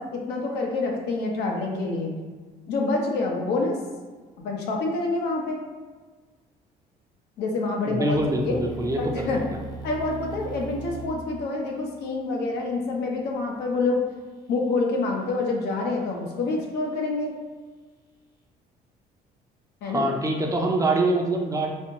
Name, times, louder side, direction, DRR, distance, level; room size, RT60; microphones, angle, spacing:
voice 1, 0.0-2.1 2.7-3.8 4.4-5.6 7.4-8.6 9.0-9.4 9.8-14.0 14.5-17.3 19.8-20.1, left 3 dB, 80° left, 0 dB, 0.8 m, -27 dB
voice 2, 7.9-9.3 19.8-21.7, right 2 dB, 20° right, 1 dB, 0.5 m, -24 dB
sound 1, 8.1-14.0, right 2 dB, 25° left, 0.6 m, -40 dB
4.2 x 2.5 x 2.9 m, 1.4 s
cardioid pair, 110°, 17 cm